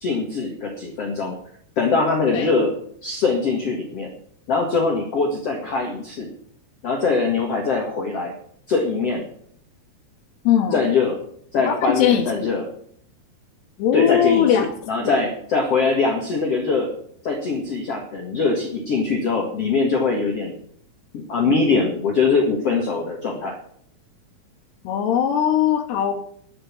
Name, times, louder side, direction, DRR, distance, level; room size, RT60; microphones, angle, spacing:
voice 1, 0.0-1.3 1.8-2.7 3.0-4.1 4.5-6.3 6.8-8.3 8.7-9.2 10.7-11.2 11.5-12.7 13.9-16.9 17.2-20.6 21.1-23.5, left 4 dB, 45° left, 1 dB, 2.3 m, -22 dB
voice 2, 10.4-10.9 11.7-12.5 13.8-14.7 15.0-15.1 24.8-26.2, left 9 dB, 85° left, 1 dB, 3.2 m, -20 dB
11.0 x 8.0 x 8.7 m, 0.63 s
omnidirectional pair, 4.6 m